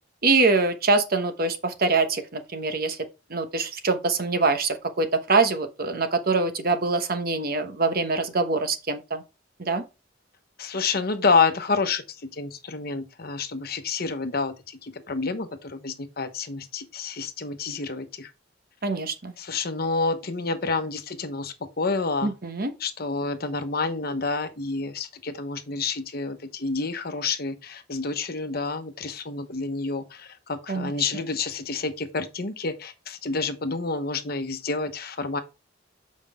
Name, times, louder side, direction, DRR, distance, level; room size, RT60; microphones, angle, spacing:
voice 1, 0.2-3.0 3.3-9.2 9.6-9.8 18.8-19.3 22.2-22.7 30.7-30.9, right 3 dB, 50° right, 1.1 m, -24 dB
voice 2, 10.6-18.3 19.4-22.3 22.8-35.4, left 4 dB, 50° left, 1.0 m, -28 dB
7.4 x 5.3 x 3.7 m
head